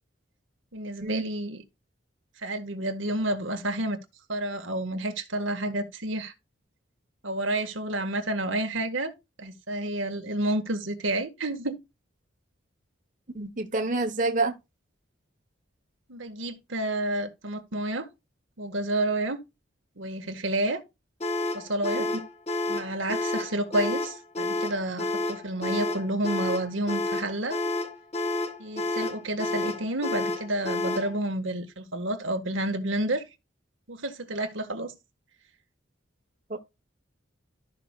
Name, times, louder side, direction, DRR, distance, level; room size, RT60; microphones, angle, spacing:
voice 1, 0.7-1.6 2.4-4.0 4.3-6.3 7.2-9.1 9.4-11.8 16.1-18.1 18.6-19.4 20.0-20.8 21.5-22.1 22.7-27.6 28.6-33.2 33.9-34.9, right 1 dB, 80° right, 1.8 m, -30 dB
voice 2, 13.3-14.6 21.9-22.2 36.5-36.6, right 3 dB, 40° right, 1.2 m, -28 dB
sound 1, 21.2-31.1, left 2 dB, 30° left, 1.4 m, -30 dB
13.5 x 5.9 x 2.4 m
head